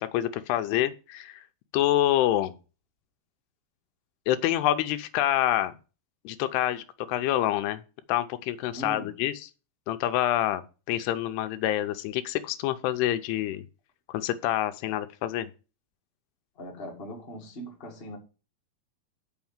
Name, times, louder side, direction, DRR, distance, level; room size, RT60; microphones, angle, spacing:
voice 1, 0.0-1.5 1.7-2.6 4.3-5.7 6.2-7.8 8.1-9.5 9.9-10.6 10.9-13.6 14.1-15.5, left 13 dB, 85° left, 2.7 m, -27 dB
voice 2, 8.7-9.1 16.6-18.2, equal, 25° left, 1.2 m, -40 dB
7.1 x 5.7 x 7.2 m
omnidirectional pair, 4.7 m